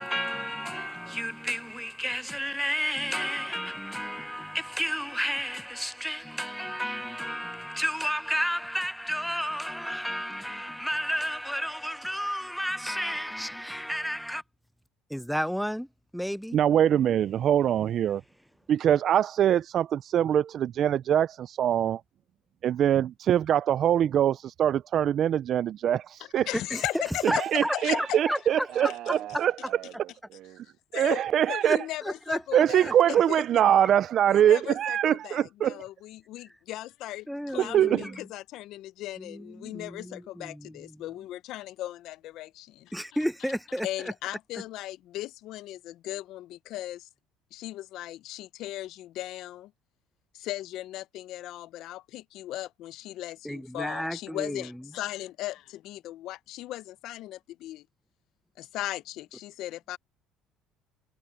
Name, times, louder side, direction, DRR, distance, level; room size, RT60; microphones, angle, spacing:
voice 1, 0.0-14.4 15.1-16.6 26.5-28.9 29.3-29.5 31.6-32.9 37.3-38.3 39.2-41.2 42.9-44.1 53.4-54.9, equal, ahead, 0.6 m, -32 dB
voice 2, 16.5-18.2 18.7-22.0 22.6-26.5 27.4-29.5 30.9-31.8 32.5-35.8 37.6-38.0, right 10 dB, 50° right, 0.4 m, -23 dB
voice 3, 26.5-28.2 28.9-29.0 30.9-32.9 33.3-33.4 34.3-42.9 43.8-47.1 47.5-49.7 50.3-57.9 58.6-60.0, left 15 dB, 65° left, 0.6 m, -37 dB
voice 4, 28.7-31.1, right 13 dB, 65° right, 1.3 m, -43 dB
cardioid pair, 120°, 0 cm